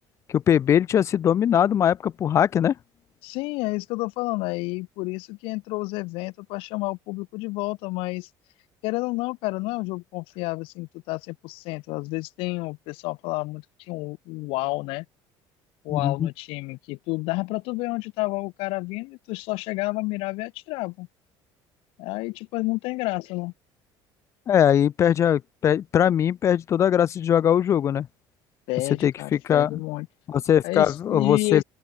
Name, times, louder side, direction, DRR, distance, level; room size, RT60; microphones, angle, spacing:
voice 1, 0.3-2.7 15.9-16.3 24.5-28.1 29.0-29.8 30.3-31.6, left 9 dB, 30° left, 0.5 m, -21 dB
voice 2, 3.2-8.3 8.8-15.0 15.8-21.1 22.0-23.5 28.7-30.1 30.6-31.6, left 23 dB, 80° left, 1.3 m, -30 dB
open air
cardioid pair, 170°, 9 cm